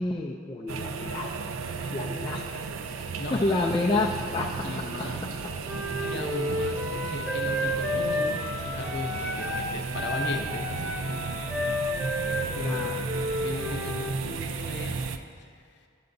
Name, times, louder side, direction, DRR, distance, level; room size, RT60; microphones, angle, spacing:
voice 1, 0.0-1.3 1.9-2.6 3.3-4.5 5.0-5.1 12.6-13.3, left 2 dB, 25° left, -2 dB, 0.3 m, -29 dB
sound 1, 0.7-15.2, right 4 dB, 85° right, 0.4 m, -34 dB
Thunder / Rain, 3.4-10.1, equal, 35° right, 0.8 m, -50 dB
voice 2, 4.6-5.3 6.0-13.2 13.4-15.0, left 1 dB, 55° left, 2 dB, 0.7 m, -38 dB
Wind instrument woodwind instrument, 5.6-9.7 9.9-14.1, left 1 dB, 5° right, 0.8 m, -31 dB
11.0 x 6.7 x 2.6 m, 2.1 s
head